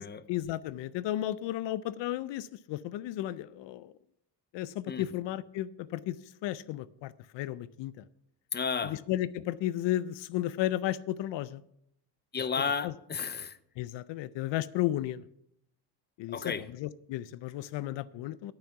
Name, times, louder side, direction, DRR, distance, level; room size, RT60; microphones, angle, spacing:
voice 1, 0.3-3.9 4.5-8.0 8.8-11.6 12.8-12.9 13.8-15.2 16.2-18.5, left 13 dB, 85° left, 0.5 m, -34 dB
voice 2, 8.5-9.0 12.3-13.6 16.3-16.6, left 6 dB, 25° left, 0.5 m, -32 dB
9.1 x 8.9 x 5.8 m
cardioid pair, 130°, 43 cm